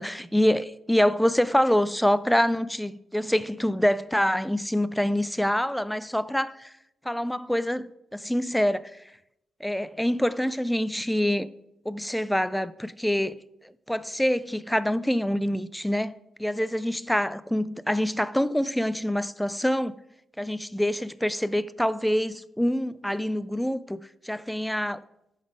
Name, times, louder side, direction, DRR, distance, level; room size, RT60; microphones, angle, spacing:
voice 1, 0.0-6.7 7.0-9.0 9.6-11.5 11.9-13.3 13.6-20.0 20.4-25.0, equal, 5° left, 0.3 m, -26 dB
11.5 x 4.0 x 5.0 m
cardioid pair, 110°, 0 cm